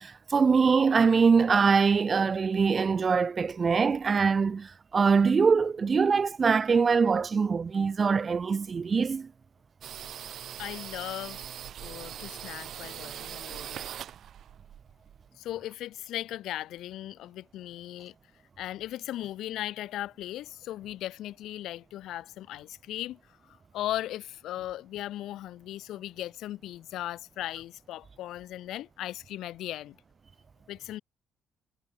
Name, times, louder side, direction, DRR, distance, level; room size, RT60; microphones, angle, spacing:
voice 1, 0.0-9.3, right 5 dB, 30° right, 0.8 m, -23 dB
sound 1, 9.8-15.3, right 10 dB, 60° right, 2.4 m, -41 dB
voice 2, 10.6-11.5 11.8-13.8 15.4-18.1 18.6-23.2 23.5-30.0 30.7-31.0, left 14 dB, 85° left, 6.2 m, -37 dB
cardioid pair, 150°, 0 cm